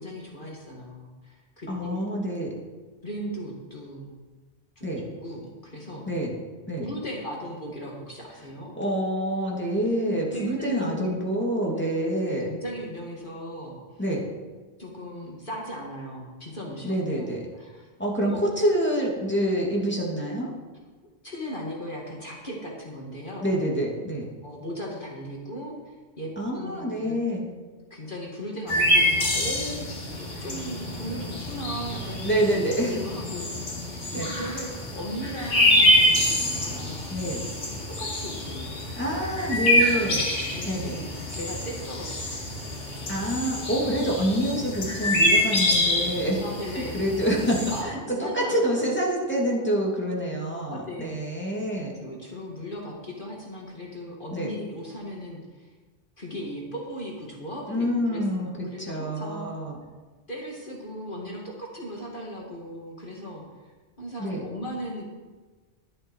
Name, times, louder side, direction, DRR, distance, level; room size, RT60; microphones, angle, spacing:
voice 1, 0.0-2.2 3.0-4.2 4.8-4.9 5.2-6.1 6.8-8.7 10.3-11.2 12.5-13.8 14.8-17.9 18.2-18.4 21.2-23.5 24.4-27.2 27.9-29.9 30.1-37.1 37.7-38.8 39.5-40.2 40.5-42.5 46.4-47.0 47.7-48.8 50.7-51.2 51.7-55.7 56.2-59.5 60.3-63.7 64.0-65.1, equal, 45° left, -3 dB, 2.1 m, -37 dB
voice 2, 1.7-2.5 4.8-5.0 6.1-6.3 6.7-6.9 8.8-12.5 14.0-14.2 16.8-17.4 18.0-20.5 23.4-24.3 26.4-27.5 32.2-33.0 34.2-34.3 37.1-37.4 39.0-40.3 40.7-41.0 43.1-46.4 46.7-52.0 54.3-54.5 57.7-58.5 58.8-59.8 64.2-64.4, equal, 10° left, -4 dB, 2.5 m, -27 dB
sound 1, 28.7-47.8, left 1 dB, 85° left, 2.4 m, -26 dB
11.5 x 11.0 x 4.7 m, 1.3 s
omnidirectional pair, 1.3 m